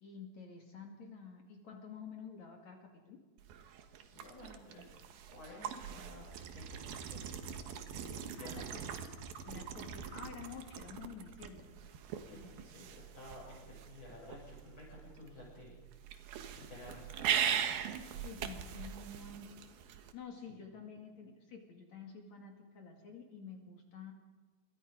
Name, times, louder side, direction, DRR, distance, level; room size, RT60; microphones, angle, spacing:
voice 1, 0.0-3.2 8.4-8.8 9.4-11.7 18.2-24.1, left 5 dB, 55° left, 2 dB, 3.3 m, -50 dB
sound 1, 3.4-20.1, right 8 dB, 85° right, 3.3 m, -41 dB
voice 2, 4.1-4.8 5.3-8.0 8.3-8.7 12.2-15.8 16.5-17.6 20.5-20.6, left 2 dB, 30° left, -4 dB, 7.3 m, -53 dB
28.0 x 23.5 x 5.2 m, 1.4 s
omnidirectional pair, 4.2 m